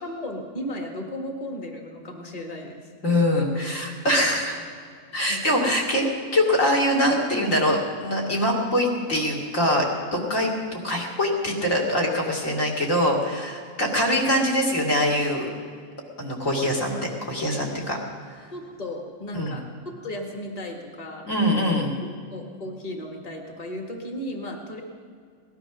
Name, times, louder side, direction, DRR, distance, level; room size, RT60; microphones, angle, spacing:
voice 1, 0.0-2.9 5.3-5.7 18.5-21.2 22.0-24.8, left 1 dB, 25° left, 2 dB, 1.8 m, -35 dB
voice 2, 3.0-4.6 5.1-15.5 16.2-16.9 17.2-18.0 19.3-19.6 21.2-21.9, left 1 dB, 60° left, 0 dB, 2.8 m, -23 dB
18.5 x 12.0 x 6.0 m, 2.1 s
omnidirectional pair, 1.6 m